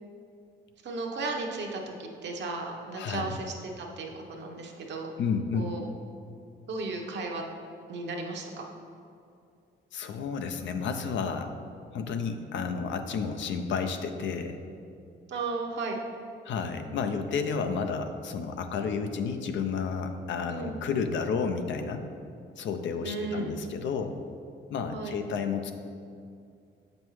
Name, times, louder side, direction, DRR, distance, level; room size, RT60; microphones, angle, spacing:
voice 1, 0.8-5.1 5.5-5.9 6.7-7.4 7.9-8.7 15.3-16.0 20.5-20.7 23.0-23.6 24.9-25.2, right 3 dB, 65° right, 1 dB, 0.9 m, -35 dB
voice 2, 3.0-3.4 5.2-5.7 9.9-11.5 11.9-14.6 16.4-22.1 22.6-24.2 24.7-25.7, left 5 dB, 70° left, 7 dB, 0.5 m, -31 dB
7.3 x 5.3 x 3.1 m, 2.5 s
cardioid pair, 90°, 20 cm